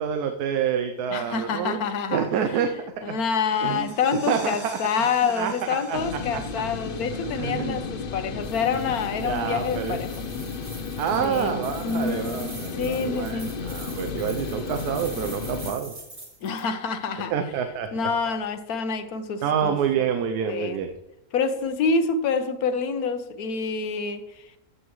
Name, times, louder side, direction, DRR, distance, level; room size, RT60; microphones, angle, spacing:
voice 1, 0.0-1.8 2.1-2.7 3.1-3.2 3.6-3.9 4.3-4.8 5.3-5.5 5.9-6.0 6.3-6.4 7.2-7.8 9.2-10.0 11.0-15.9 17.3-17.9 19.4-20.9, right 8 dB, 85° right, 7 dB, 1.2 m, -27 dB
voice 2, 1.1-2.3 2.5-2.6 3.0-10.1 11.2-13.5 16.4-17.3 17.9-19.8 20.5-20.8 21.3-24.4, left 5 dB, 75° left, 9 dB, 1.3 m, -27 dB
sound 1, 3.5-8.9, right 2 dB, 30° right, 1.8 m, -47 dB
sound 2, 5.9-15.7, left 5 dB, 50° left, 0.7 m, -33 dB
sound 3, 8.4-16.7, right 2 dB, 50° right, 3.2 m, -44 dB
14.0 x 7.8 x 3.1 m, 0.90 s
omnidirectional pair, 1.6 m